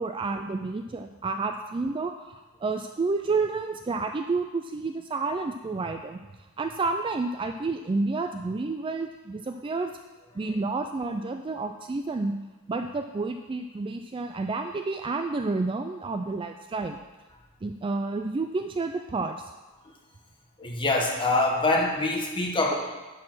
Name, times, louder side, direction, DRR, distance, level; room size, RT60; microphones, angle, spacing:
voice 1, 0.0-6.2 6.6-9.9 10.3-12.3 12.7-17.0 17.6-19.5, right 3 dB, 25° right, 6 dB, 0.3 m, -30 dB
voice 2, 20.6-22.7, left 2 dB, 20° left, 0 dB, 1.2 m, -24 dB
10.5 x 4.7 x 6.0 m, 1.2 s
head